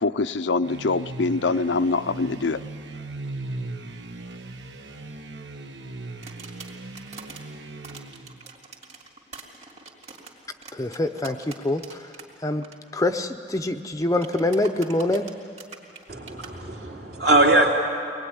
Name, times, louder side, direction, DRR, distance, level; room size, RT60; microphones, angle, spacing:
voice 1, 0.0-2.6, left 3 dB, 75° left, 11 dB, 0.6 m, -24 dB
sound 1, 0.6-8.4, right 2 dB, 75° right, 1.3 m, -38 dB
sound 2, 6.2-7.4 7.8-12.3 12.5-12.8 14.2-16.5, right 4 dB, 35° right, 2.9 m, -43 dB
voice 2, 10.7-12.1 12.4-12.6 12.9-15.3, left 1 dB, 20° left, 6 dB, 0.6 m, -25 dB
voice 3, 16.1-17.7, right 2 dB, 55° right, 0 dB, 3.1 m, -21 dB
24.0 x 20.0 x 9.9 m, 2.5 s
head